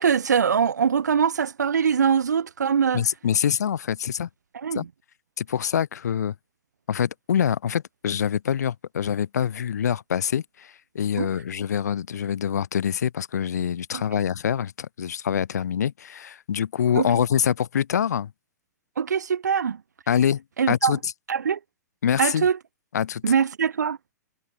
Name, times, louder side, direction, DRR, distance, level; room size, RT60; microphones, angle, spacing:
voice 1, 0.0-3.0 4.6-4.9 11.2-11.3 13.9-14.0 17.0-17.1 19.0-19.8 20.6-21.0 21.3-21.6 22.2-22.6 23.2-24.0, right 7 dB, 75° right, 1.0 m, -22 dB
voice 2, 2.9-4.3 4.7-4.8 5.4-6.3 6.9-18.3 20.1-21.1 22.0-22.5 22.9-23.2, left 8 dB, 70° left, 0.9 m, -25 dB
figure-of-eight pair, 110°, 9 cm